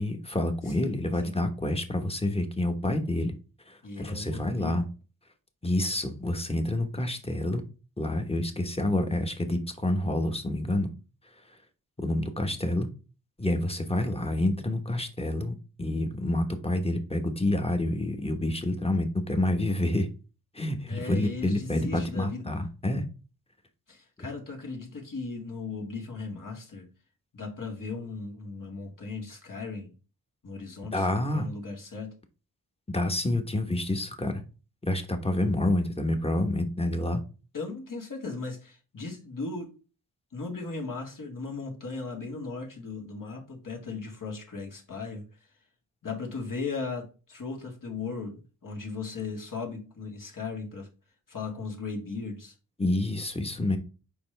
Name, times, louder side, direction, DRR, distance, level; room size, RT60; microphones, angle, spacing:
voice 1, 0.0-3.3 3.7-4.8 5.6-7.6 8.0-10.9 12.0-12.9 13.4-20.1 20.5-23.0 30.9-31.5 32.9-34.4 34.8-37.2 52.8-53.8, left 1 dB, 15° left, 1.2 m, -28 dB
voice 2, 0.6-1.3 3.8-4.8 20.9-22.5 23.9-26.9 27.3-29.9 30.4-32.1 37.5-39.7 40.3-45.2 46.0-50.9 51.3-52.5, left 4 dB, 60° left, 2.0 m, -37 dB
6.9 x 5.1 x 3.3 m
wide cardioid pair, 90°, 36 cm